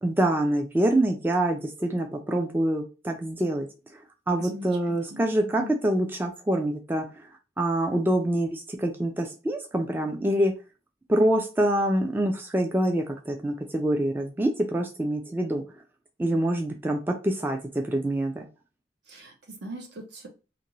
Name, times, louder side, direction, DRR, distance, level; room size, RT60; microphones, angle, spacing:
voice 1, 0.0-3.7 4.3-7.1 7.6-10.5 11.1-15.6 16.2-18.5, right 1 dB, 10° right, 3 dB, 0.3 m, -25 dB
voice 2, 4.4-5.2 5.6-5.7 19.1-20.3, equal, 65° right, 3 dB, 0.9 m, -41 dB
2.6 x 2.5 x 3.0 m, 0.31 s
head